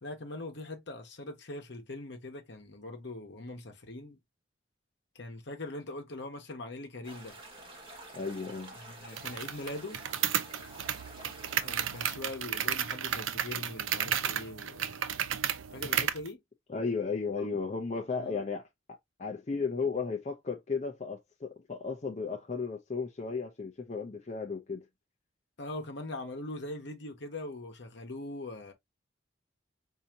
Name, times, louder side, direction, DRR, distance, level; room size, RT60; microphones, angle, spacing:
voice 1, 0.0-4.2 5.1-7.4 8.7-10.0 11.6-15.2 15.7-16.4 17.4-17.5 18.2-18.4 25.6-28.7, left 2 dB, 60° left, 1.1 m, -42 dB
sound 1, 7.0-12.1, right 2 dB, 30° right, 1.5 m, -49 dB
voice 2, 8.1-8.7 16.7-18.6 19.2-24.8, left 4 dB, 35° left, 0.6 m, -34 dB
sound 2, 9.2-16.3, right 9 dB, 90° right, 0.5 m, -33 dB
4.8 x 2.8 x 2.8 m
head